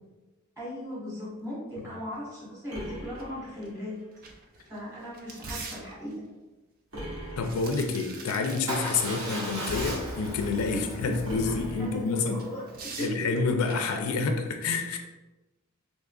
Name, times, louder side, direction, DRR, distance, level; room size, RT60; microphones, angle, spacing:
voice 1, 0.6-3.9 4.7-6.1 10.7-12.0 12.3-12.6 13.0-13.3, equal, 15° right, -7 dB, 1.3 m, -38 dB
sound 1, 2.7-4.1 6.9-8.1 11.2-12.6, equal, 60° right, 1.2 m, -41 dB
sound 2, 3.2-3.3 3.6-3.7 4.1-6.3 7.2-9.0 9.3-9.4 12.1-14.1, right 4 dB, 40° right, 0.4 m, -43 dB
voice 2, 7.4-12.4 13.0-15.0, left 4 dB, 80° left, 5 dB, 0.4 m, -28 dB
Motorcycle / Engine starting / Idling, 8.7-12.8, equal, 75° right, 0.8 m, -36 dB
3.6 x 3.0 x 2.3 m, 1.1 s
head